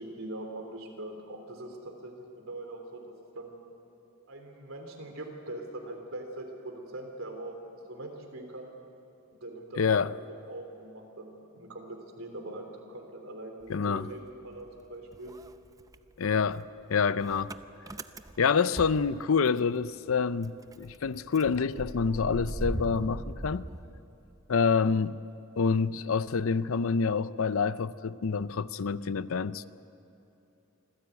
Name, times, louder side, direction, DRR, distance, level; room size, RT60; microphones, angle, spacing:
voice 1, 0.0-3.0 3.3-3.6 4.3-8.7 9.4-15.3, right 2 dB, 85° right, 3.4 m, -42 dB
voice 2, 9.7-10.1 13.7-14.1 16.2-17.5 18.4-23.6 24.5-25.2 25.6-29.6, left 5 dB, 90° left, 0.6 m, -27 dB
Motor vehicle (road) / Engine starting, 13.6-14.8 15.1-19.8 20.1-20.2 20.4-24.5, right 1 dB, 15° right, 0.6 m, -40 dB
26.0 x 15.0 x 8.3 m
head